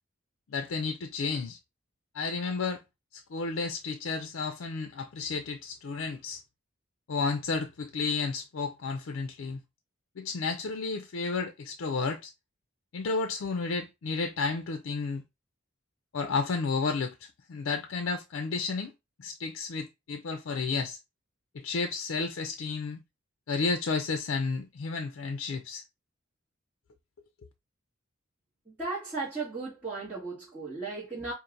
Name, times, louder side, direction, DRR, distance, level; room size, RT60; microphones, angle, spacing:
voice 1, 0.5-1.6 2.1-2.8 3.1-6.4 7.1-9.6 10.2-12.3 12.9-15.2 16.1-18.9 19.2-21.0 21.5-23.0 23.5-25.8, left 4 dB, 65° left, 0.4 m, -32 dB
voice 2, 28.7-31.3, right 3 dB, 10° right, 1.6 m, -36 dB
5.3 x 2.5 x 2.5 m
head